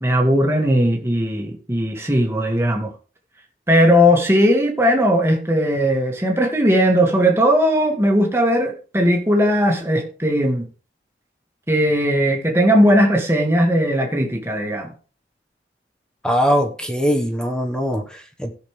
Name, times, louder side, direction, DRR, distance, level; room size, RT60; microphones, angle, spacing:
voice 1, 0.0-2.9 3.7-10.7 11.7-14.9, equal, 15° right, 1.9 m, -18 dB
voice 2, 16.2-18.5, equal, 5° left, 1.2 m, -21 dB
17.0 x 6.6 x 3.3 m
head